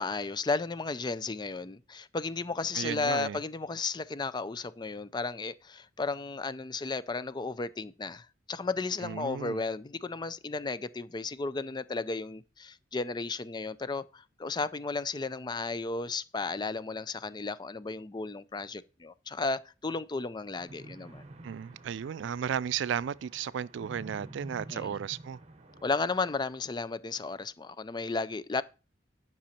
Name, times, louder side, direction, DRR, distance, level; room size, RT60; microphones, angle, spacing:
voice 1, 0.0-21.2 24.7-24.9 25.8-28.6, left 3 dB, 25° left, 0.4 m, -34 dB
voice 2, 2.7-3.4 9.0-9.6 21.4-25.4, right 8 dB, 85° right, 0.3 m, -34 dB
sound 1, 20.6-26.0, right 2 dB, 35° right, 1.1 m, -49 dB
10.5 x 6.1 x 4.3 m
head